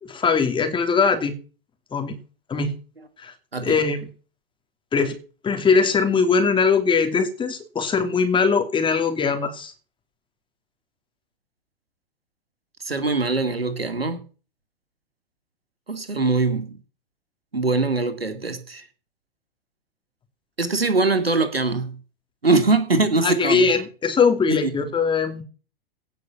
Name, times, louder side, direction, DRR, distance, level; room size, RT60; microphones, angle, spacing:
voice 1, 0.0-1.3 1.9-2.2 2.5-2.8 3.2-3.3 3.6-4.1 4.9-5.2 5.4-9.7 23.2-25.4, left 5 dB, 15° left, 2.9 m, -21 dB
voice 2, 3.5-3.8 12.8-14.2 15.9-16.8 17.5-18.8 20.6-22.0 22.4-23.7 24.5-24.7, right 3 dB, 85° right, 2.5 m, -22 dB
17.5 x 6.2 x 7.3 m
figure-of-eight pair, 100°, 29 cm